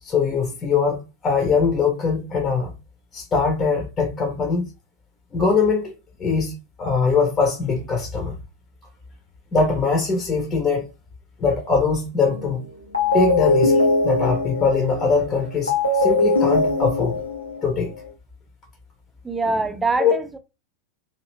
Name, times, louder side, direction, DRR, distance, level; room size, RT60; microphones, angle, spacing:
voice 1, 0.0-2.7 3.1-4.7 5.3-5.9 6.2-8.3 9.5-10.9 11.4-12.7 13.1-17.2 17.6-17.9 20.0-20.1, left 4 dB, 25° left, 0.8 m, -22 dB
sound 1, 12.3-12.6 12.9-18.1, left 3 dB, 80° left, 0.7 m, -21 dB
voice 2, 19.2-20.4, right 3 dB, 10° right, 0.5 m, -24 dB
2.9 x 2.7 x 3.1 m
figure-of-eight pair, 90°, 0 cm